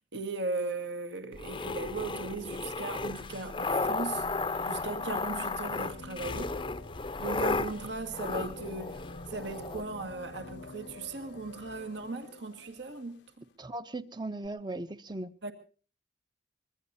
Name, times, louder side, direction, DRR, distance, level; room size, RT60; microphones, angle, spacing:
voice 1, 0.1-4.3 4.6-6.6 7.2-13.5 15.4-15.5, right 3 dB, 70° right, 1.9 m, -38 dB
sound 1, 1.3-9.8, left 3 dB, 25° left, 0.7 m, -34 dB
sound 2, 2.4-13.2 14.4-14.5, left 2 dB, 70° left, 0.9 m, -48 dB
voice 2, 13.6-15.3, right 2 dB, 25° right, 0.9 m, -38 dB
24.5 x 21.5 x 2.7 m
head